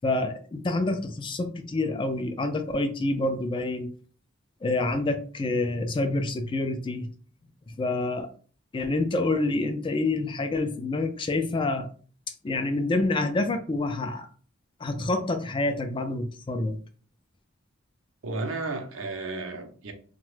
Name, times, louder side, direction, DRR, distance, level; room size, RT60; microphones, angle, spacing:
voice 1, 0.0-3.9 4.6-7.1 7.7-8.3 8.7-11.9 12.4-14.3 14.8-16.8, left 2 dB, 25° left, 0.3 m, -27 dB
voice 2, 18.2-19.9, right 3 dB, 85° right, 0.6 m, -33 dB
2.8 x 2.2 x 3.1 m
head